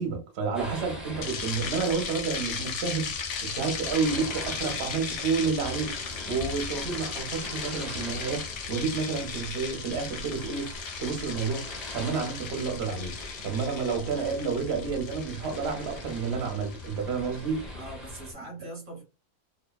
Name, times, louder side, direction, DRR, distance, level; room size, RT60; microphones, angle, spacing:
voice 1, 0.0-3.1 3.4-5.9 6.3-10.7 11.0-13.2 13.4-17.6, right 5 dB, 55° right, 0.8 m, -30 dB
sound 1, 0.5-18.3, left 1 dB, ahead, 0.6 m, -42 dB
sound 2, 1.2-17.5, left 6 dB, 65° left, 0.7 m, -37 dB
voice 2, 17.7-19.0, right 1 dB, 25° right, 1.0 m, -42 dB
2.7 x 2.1 x 2.3 m
omnidirectional pair, 1.6 m